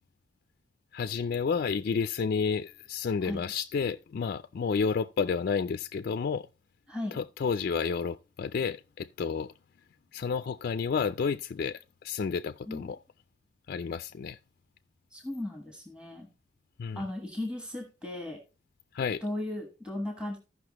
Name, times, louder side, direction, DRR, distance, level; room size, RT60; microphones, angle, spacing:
voice 1, 0.9-6.5 7.1-9.5 10.1-13.0 13.7-14.4 16.8-17.0 18.9-19.2, left 5 dB, 50° left, 0.3 m, -31 dB
voice 2, 3.2-3.5 6.9-7.2 12.7-12.9 15.1-16.3 16.9-18.4 19.2-20.4, left 1 dB, 5° right, 1.3 m, -36 dB
15.0 x 5.5 x 2.9 m
head